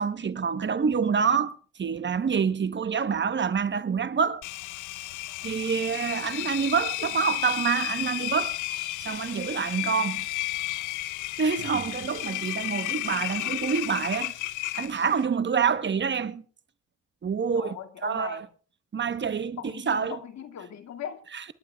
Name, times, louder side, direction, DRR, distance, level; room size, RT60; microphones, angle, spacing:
voice 1, 0.0-1.5 1.8-4.4 5.4-8.6 9.0-10.3 11.4-14.3 14.7-16.4 17.2-17.7 18.0-18.5 18.9-19.6 19.9-20.2 21.3-21.4, right 6 dB, 40° right, 1.1 m, -27 dB
Engine, 4.4-15.3, left 17 dB, 90° left, 0.7 m, -33 dB
voice 2, 17.5-18.4 19.6-21.2, left 8 dB, 65° left, 2.3 m, -39 dB
27.5 x 11.5 x 2.3 m
cardioid pair, 90°, 30 cm